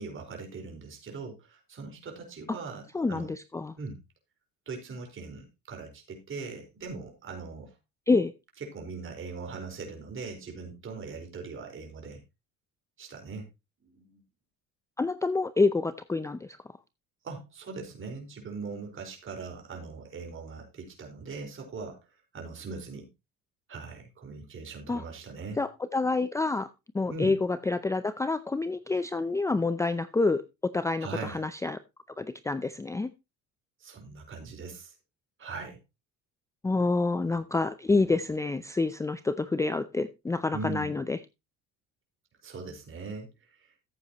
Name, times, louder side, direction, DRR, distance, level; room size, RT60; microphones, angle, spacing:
voice 1, 0.0-3.3 3.8-4.0 4.7-7.7 8.7-12.2 13.0-13.5 13.8-14.2 17.2-22.0 22.3-23.1 23.7-25.6 27.1-27.3 31.0-31.5 33.8-34.9 35.4-35.8 40.5-40.9 42.4-43.8, right 4 dB, 40° right, 2 dB, 4.7 m, -40 dB
voice 2, 2.9-3.7 8.1-8.3 15.0-16.6 24.9-25.0 25.6-26.7 26.9-30.4 30.7-31.8 32.2-33.1 36.6-41.2, left 3 dB, 10° left, 13 dB, 0.5 m, -27 dB
14.0 x 8.3 x 3.0 m, 0.24 s
cardioid pair, 120°, 32 cm